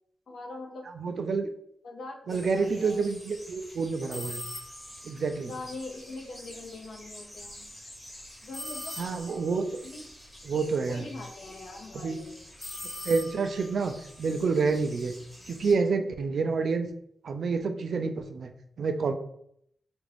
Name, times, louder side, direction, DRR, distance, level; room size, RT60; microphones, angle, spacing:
voice 1, 0.3-0.9 1.8-3.0 5.4-7.7 8.4-9.0 9.8-10.1 10.9-12.3, left 3 dB, 65° left, 2 dB, 0.6 m, -42 dB
voice 2, 1.0-1.5 2.3-4.4 5.0-5.5 9.0-9.6 10.4-11.1 12.0-12.2 13.0-15.1 15.5-16.9 17.2-18.5 18.8-19.1, right 4 dB, 65° right, 7 dB, 0.3 m, -28 dB
sound 1, 2.3-15.7, equal, 10° left, 0.9 m, -49 dB
sound 2, 4.1-5.0 8.5-9.5 12.6-13.7, left 1 dB, 30° left, 1.2 m, -40 dB
3.5 x 2.5 x 3.3 m, 0.71 s
wide cardioid pair, 125°, 0 cm